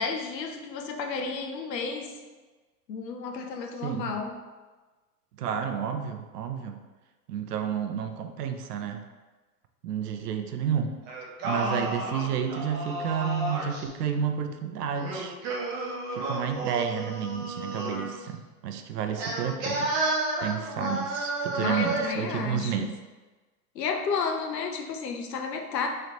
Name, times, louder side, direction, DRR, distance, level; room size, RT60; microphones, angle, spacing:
voice 1, 0.0-2.1 2.9-4.3 11.6-12.0 20.8-21.0 21.6-22.9 23.7-25.9, left 5 dB, 80° left, 3 dB, 0.8 m, -32 dB
voice 2, 3.8-4.1 5.4-6.8 7.3-9.0 9.8-10.9 11.4-15.4 15.8-19.9 20.4-22.9, right 8 dB, 70° right, 6 dB, 0.6 m, -31 dB
Singing, 11.1-13.9 14.9-18.1 19.2-22.3, right 2 dB, 20° right, 0.4 m, -31 dB
3.8 x 3.2 x 2.9 m, 1.2 s
hypercardioid pair, 110°, 49 cm